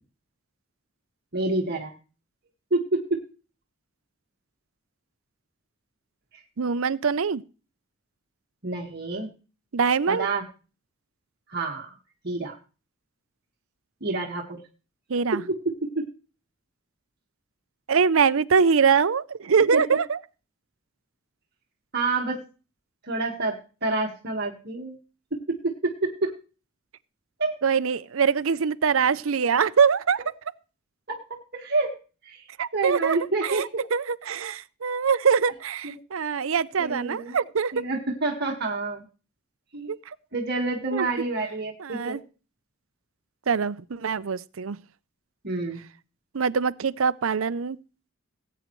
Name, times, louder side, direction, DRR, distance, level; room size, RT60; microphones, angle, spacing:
voice 1, 1.3-1.9 2.7-3.2 8.6-9.3 10.1-10.4 11.5-11.9 12.2-12.5 14.0-14.6 15.3-15.6 16.0-16.1 19.7-19.8 21.9-22.4 23.0-25.0 25.3-26.3 27.4-27.6 31.1-31.2 31.5-32.0 32.2-32.4 32.7-33.8 35.8-35.9 36.8-37.4 37.7-39.0 39.7-39.9 40.3-42.2 45.4-45.8, right 3 dB, 50° right, 1.7 m, -28 dB
voice 2, 6.6-7.4 9.7-10.3 15.1-15.4 17.9-20.2 27.6-30.2 32.6-37.8 39.9-40.2 40.9-41.1 41.8-42.2 43.5-44.8 46.3-47.8, right 6 dB, 75° right, 0.6 m, -23 dB
19.0 x 8.8 x 3.1 m
head